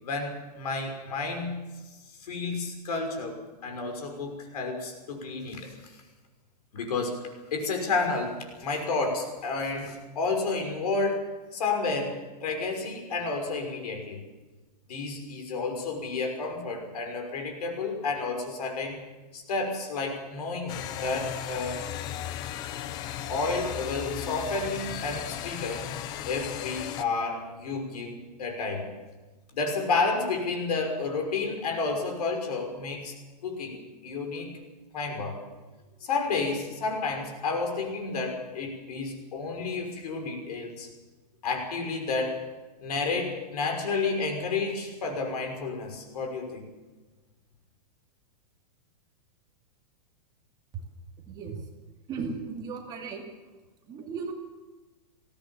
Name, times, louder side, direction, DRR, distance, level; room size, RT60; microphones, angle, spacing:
voice 1, 0.0-1.6 2.2-3.4 3.6-5.7 6.7-7.2 7.5-11.3 11.5-14.2 14.9-19.0 19.3-21.9 23.3-25.9 26.3-28.9 29.5-33.1 33.4-34.5 34.9-35.4 36.0-40.9 41.4-42.4 42.8-46.6, left 3 dB, 65° left, 3 dB, 5.9 m, -31 dB
sound 1, 20.7-27.0, left 10 dB, 20° left, 0.5 m, -36 dB
voice 2, 51.2-51.7 52.1-53.2 53.9-54.3, right 5 dB, 20° right, 1 dB, 2.4 m, -36 dB
21.0 x 16.5 x 7.4 m, 1.2 s
supercardioid pair, 170°, 21 cm